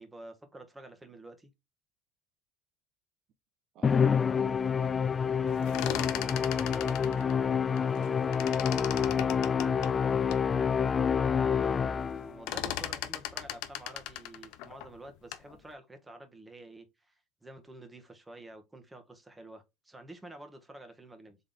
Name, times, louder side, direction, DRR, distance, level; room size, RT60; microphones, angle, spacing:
voice 1, 0.0-1.5 11.1-17.1 17.4-21.4, right 2 dB, 15° right, 1.3 m, -49 dB
voice 2, 3.7-5.2 5.4-10.0, right 9 dB, 55° right, 0.9 m, -51 dB
Musical instrument, 3.8-12.4, left 7 dB, 30° left, 0.3 m, -28 dB
sound 1, 5.5-8.1 8.3-10.5 11.0-11.1 11.3-11.7 12.0-15.5, left 13 dB, 70° left, 0.6 m, -38 dB
4.0 x 3.6 x 3.5 m
hypercardioid pair, 85°, 0 cm